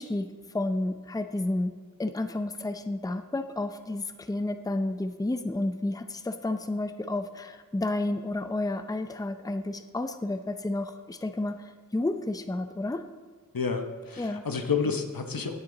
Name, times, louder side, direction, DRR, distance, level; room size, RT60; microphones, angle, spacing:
voice 1, 0.0-13.0 14.2-14.5, left 2 dB, 10° left, 8 dB, 0.6 m, -31 dB
voice 2, 13.5-15.5, left 5 dB, 80° left, 6 dB, 1.0 m, -30 dB
17.0 x 6.9 x 3.9 m, 1.4 s
wide cardioid pair, 45°, 34 cm